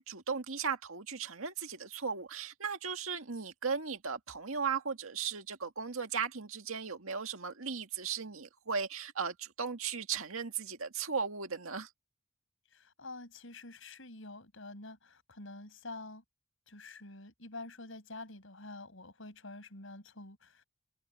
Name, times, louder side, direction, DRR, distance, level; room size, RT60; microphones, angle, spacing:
voice 1, 0.0-11.9, right 6 dB, 85° right, 2.0 m, -36 dB
voice 2, 12.7-16.2 16.7-20.6, left 2 dB, 70° left, 5.9 m, -47 dB
head